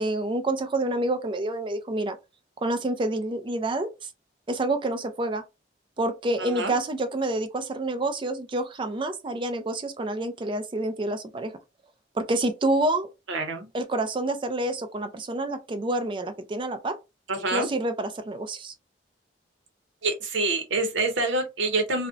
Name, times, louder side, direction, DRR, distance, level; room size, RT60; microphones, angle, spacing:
voice 1, 0.0-2.2 2.6-3.9 4.5-5.4 6.0-11.5 12.2-13.1 13.7-17.0 17.5-18.7, right 2 dB, 25° right, 0.4 m, -28 dB
voice 2, 6.4-6.7 13.3-13.7 17.3-17.7 20.0-22.1, right 3 dB, 90° right, 0.7 m, -26 dB
2.5 x 2.0 x 2.5 m
head